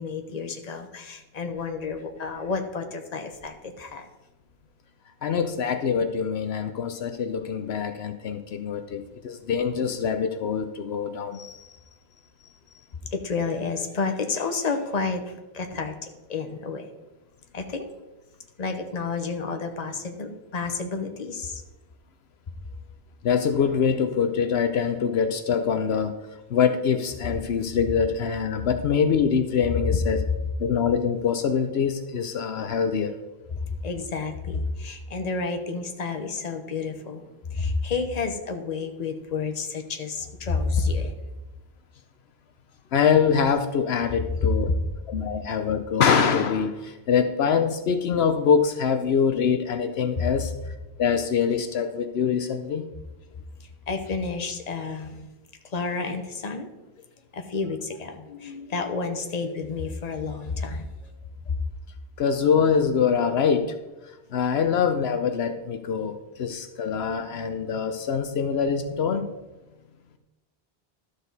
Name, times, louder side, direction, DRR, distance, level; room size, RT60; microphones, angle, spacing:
voice 1, 0.0-4.1 13.1-16.9 17.5-17.9 18.6-21.6 33.7-41.2 44.4-44.8 50.2-50.3 53.9-55.3 55.6-56.7 57.3-61.1 61.5-61.6, left 4 dB, 40° left, 5 dB, 1.0 m, -30 dB
voice 2, 5.2-11.7 23.2-26.1 26.5-30.2 30.6-33.2 42.9-44.7 45.1-50.5 51.0-52.9 62.2-63.7 64.3-69.3, left 6 dB, 75° left, 8 dB, 0.9 m, -24 dB
12.5 x 6.6 x 4.0 m, 1.1 s
omnidirectional pair, 1.1 m